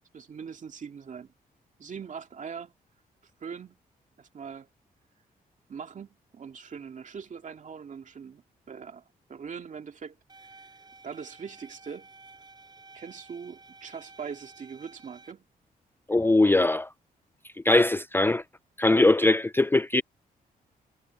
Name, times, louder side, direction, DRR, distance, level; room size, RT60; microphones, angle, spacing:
voice 1, 0.1-1.3 1.8-2.7 3.4-3.8 4.2-4.7 5.7-9.0 9.3-10.2 10.4-10.5 11.0-12.1 12.9-15.4, right 6 dB, 50° right, 2.2 m, -41 dB
sound 1, 10.3-15.3, right 3 dB, 25° right, 5.2 m, -52 dB
voice 2, 16.1-16.9 17.7-18.4 18.8-20.0, left 2 dB, 15° left, 0.5 m, -21 dB
cardioid pair, 80°, 16 cm